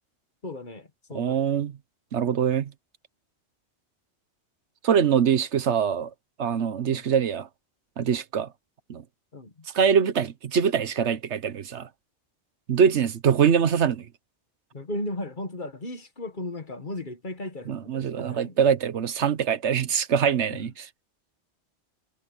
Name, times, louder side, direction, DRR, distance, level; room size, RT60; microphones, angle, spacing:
voice 1, 0.4-1.4 6.9-7.0 9.3-9.5 14.7-18.6 20.5-20.7, left 1 dB, 45° left, 1.8 m, -36 dB
voice 2, 1.1-1.7 2.1-2.7 4.8-6.1 6.4-7.5 8.0-8.5 8.9-9.0 9.7-11.9 12.7-14.1 17.7-20.9, right 7 dB, 80° right, 1.3 m, -23 dB
omnidirectional pair, 1.1 m